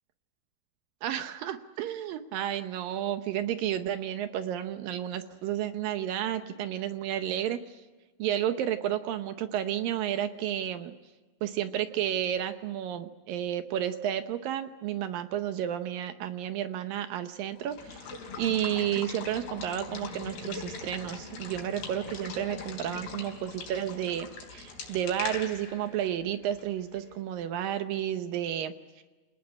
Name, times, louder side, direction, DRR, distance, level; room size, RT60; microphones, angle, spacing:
voice 1, 1.0-7.6 8.2-10.9 11.4-18.1 18.4-29.0, right 11 dB, 75° right, 10 dB, 2.2 m, -31 dB
Water / Water tap faucet / Liquid, 17.6-27.2, left 4 dB, 70° left, 5.4 m, -41 dB
27.5 x 19.0 x 9.8 m, 1.3 s
omnidirectional pair, 4.8 m